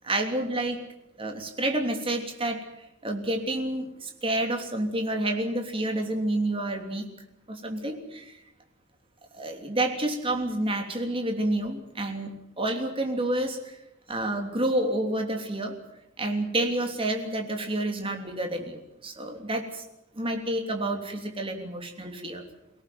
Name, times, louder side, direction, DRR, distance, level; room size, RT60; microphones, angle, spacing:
voice 1, 0.0-0.8 1.2-2.6 3.0-7.1 7.5-8.4 9.3-13.8 14.1-15.8 16.2-19.8 20.1-22.4, right 1 dB, 25° right, 4 dB, 3.2 m, -29 dB
24.0 x 17.5 x 9.3 m, 0.87 s
head